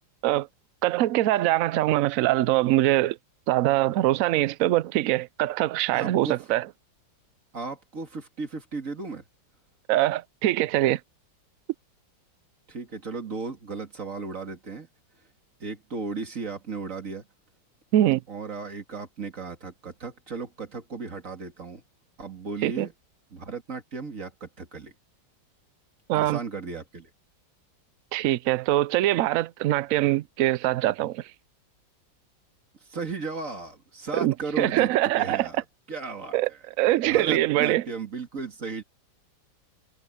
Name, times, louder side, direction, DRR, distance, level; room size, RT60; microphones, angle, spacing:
voice 1, 0.8-3.2 3.5-6.6 9.9-11.0 17.9-18.2 22.6-22.9 26.1-26.4 28.1-31.2 34.2-35.5 36.3-36.5 36.8-37.8, right 15 dB, 90° right, 0.7 m, -23 dB
voice 2, 5.9-6.4 7.5-9.2 12.7-14.9 15.6-17.3 18.3-21.8 22.2-22.9 23.3-24.9 26.1-27.1 32.9-36.6 37.0-38.8, right 4 dB, 45° right, 2.8 m, -35 dB
omnidirectional pair, 2.0 m